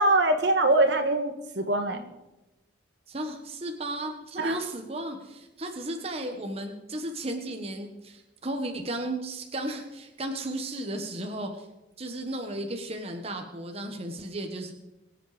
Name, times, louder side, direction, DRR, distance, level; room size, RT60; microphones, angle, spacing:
voice 1, 0.0-2.1 4.4-4.6, right 2 dB, 60° right, 6 dB, 1.7 m, -23 dB
voice 2, 3.1-11.7 12.0-14.7, right 1 dB, 30° right, 4 dB, 1.5 m, -34 dB
23.0 x 8.9 x 5.2 m, 0.99 s
head